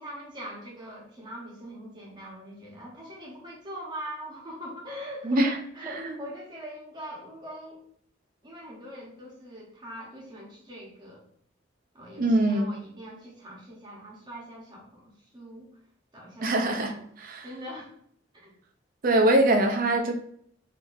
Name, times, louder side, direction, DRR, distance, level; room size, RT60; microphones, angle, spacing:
voice 1, 0.0-5.4 5.7-7.8 8.4-11.2 11.9-15.7 16.1-17.0 17.4-17.9 18.4-18.5, equal, 25° right, -3 dB, 1.0 m, -42 dB
voice 2, 5.2-5.6 5.9-6.1 12.2-12.7 16.4-16.9 17.2-17.5 19.0-20.1, right 1 dB, 45° right, 3 dB, 0.5 m, -23 dB
3.8 x 2.7 x 2.5 m, 0.64 s
head